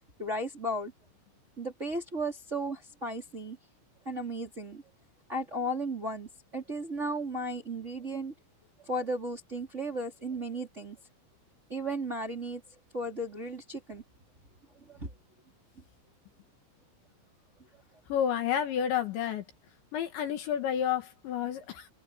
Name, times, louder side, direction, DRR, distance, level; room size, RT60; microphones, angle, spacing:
voice 1, 0.2-0.9 1.6-3.6 4.0-4.8 5.3-8.3 8.8-11.0 11.7-12.6 12.9-14.0 14.9-15.1, right 1 dB, 15° right, 2.8 m, -35 dB
voice 2, 18.1-19.4 19.9-21.9, left 9 dB, 65° left, 4.0 m, -30 dB
omnidirectional pair, 6.0 m